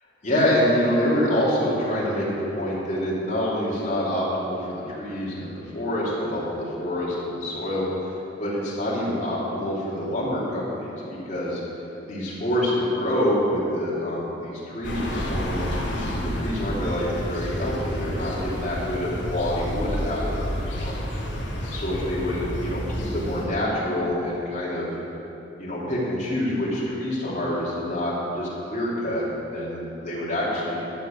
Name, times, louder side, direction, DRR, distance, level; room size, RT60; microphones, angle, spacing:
voice 1, 0.2-7.9 8.4-11.6 12.1-20.5 20.7-20.9 21.7-24.9 25.6-30.8, left 1 dB, 40° left, -7 dB, 3.3 m, -26 dB
sound 1, 14.8-23.5, equal, 85° left, 2.6 m, -30 dB
12.0 x 7.3 x 7.2 m, 2.9 s
head